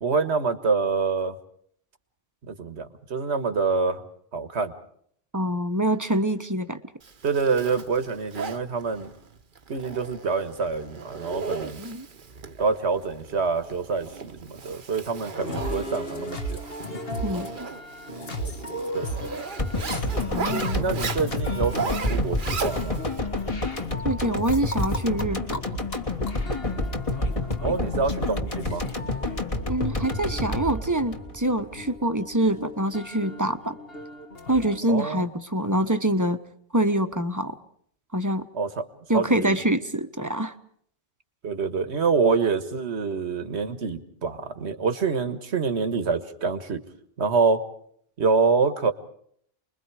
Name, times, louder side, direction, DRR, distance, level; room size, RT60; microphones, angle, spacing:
voice 1, 0.0-1.4 2.5-4.0 4.3-4.7 7.2-9.1 9.7-11.8 12.6-16.6 18.9-19.1 20.7-23.0 27.6-28.8 34.9-35.3 38.5-38.8 39.1-39.6 41.4-46.8 47.2-47.6 48.2-48.9, right 4 dB, 80° right, 9 dB, 1.8 m, -26 dB
voice 2, 5.3-6.8 11.8-12.1 17.2-17.7 20.3-21.0 24.0-25.6 29.7-33.8 34.5-36.4 36.7-37.6 38.1-38.4 39.1-40.5, right 1 dB, 20° right, 10 dB, 1.1 m, -25 dB
Zipper (clothing), 7.0-23.2, right 5 dB, 50° right, 1.1 m, -37 dB
sound 1, 15.4-34.8, equal, 60° left, 1.9 m, -36 dB
sound 2, 19.6-31.9 32.2-32.3, left 2 dB, 30° left, 1.8 m, -29 dB
29.5 x 22.0 x 4.9 m, 0.65 s
omnidirectional pair, 1.1 m